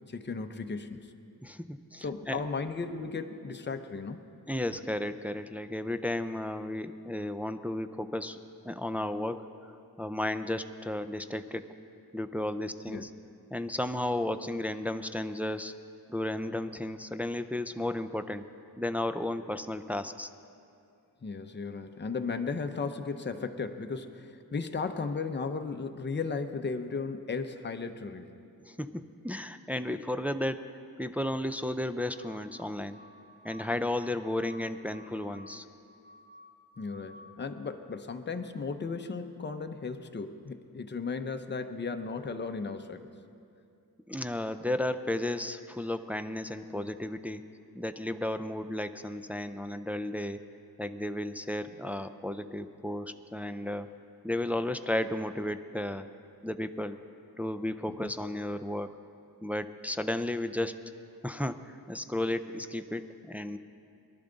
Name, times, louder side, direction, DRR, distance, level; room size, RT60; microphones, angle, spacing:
voice 1, 0.1-1.1 2.0-4.2 12.9-13.1 21.2-28.3 36.8-43.1 58.0-58.1, left 4 dB, 30° left, 6 dB, 0.7 m, -35 dB
voice 2, 1.4-2.4 4.5-8.4 8.6-11.7 12.1-13.1 13.5-15.7 16.1-18.5 18.8-20.3 28.6-30.6 31.0-33.0 33.4-35.7 44.1-47.5 47.7-50.5 50.8-53.9 54.2-56.1 56.4-57.0 57.4-59.0 59.4-60.9 61.2-63.6, left 1 dB, 5° right, 9 dB, 0.3 m, -33 dB
sound 1, 32.0-37.4, left 1 dB, 85° right, 1.6 m, -55 dB
22.5 x 11.5 x 3.9 m, 2.5 s
wide cardioid pair, 135°, 39 cm